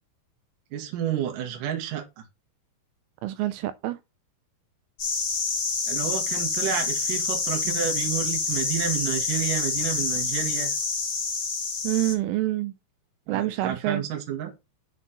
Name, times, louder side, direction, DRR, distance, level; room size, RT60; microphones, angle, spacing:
voice 1, 0.7-2.3 5.9-10.8 13.3-14.5, right 9 dB, 60° right, 2.5 m, -30 dB
voice 2, 3.2-4.0 11.8-12.7 13.3-14.0, right 15 dB, 85° right, 3.0 m, -27 dB
sound 1, 5.0-12.1, left 4 dB, 35° left, 2.0 m, -27 dB
7.2 x 4.3 x 5.3 m
omnidirectional pair, 5.6 m